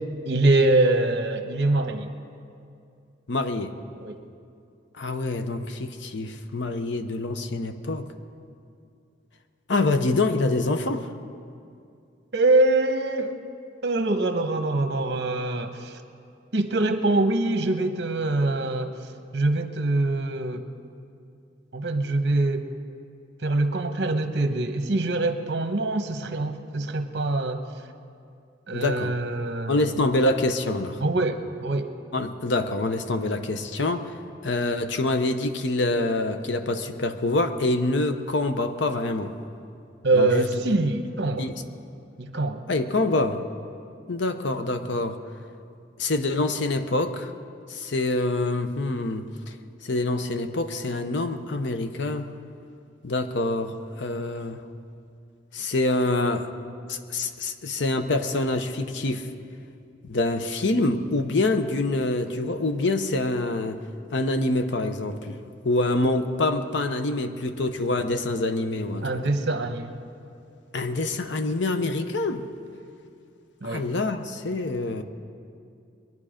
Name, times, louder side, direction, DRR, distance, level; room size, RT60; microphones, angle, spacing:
voice 1, 0.2-2.1 4.0-4.2 12.3-13.4 13.8-16.0 16.5-18.9 19.3-20.6 21.7-22.7 23.4-27.6 28.7-29.8 31.0-31.9 40.0-41.5 42.2-42.6 69.0-69.9 73.6-73.8, right 2 dB, 60° right, 7 dB, 1.0 m, -24 dB
voice 2, 3.3-3.7 5.0-8.1 9.7-11.1 28.7-29.1 29.7-31.0 32.1-34.1 34.4-39.3 40.1-40.5 41.4-41.6 42.7-43.4 44.1-45.2 46.0-47.3 47.7-49.2 49.8-52.3 53.0-54.6 55.5-56.5 56.9-59.3 60.1-63.8 64.1-65.4 65.6-69.1 70.7-72.4 73.6-75.0, left 2 dB, 75° left, 8 dB, 0.8 m, -26 dB
22.5 x 11.0 x 5.1 m, 2.5 s
head